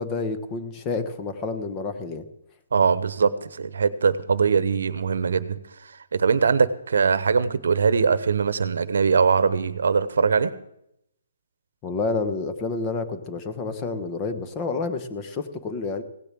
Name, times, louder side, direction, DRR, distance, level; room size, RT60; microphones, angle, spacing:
voice 1, 0.0-2.3 11.8-16.0, left 3 dB, 20° left, 8 dB, 1.1 m, -29 dB
voice 2, 2.7-10.5, right 5 dB, 75° right, 15 dB, 0.9 m, -22 dB
17.0 x 6.8 x 7.5 m, 0.78 s
hypercardioid pair, 150°, 0 cm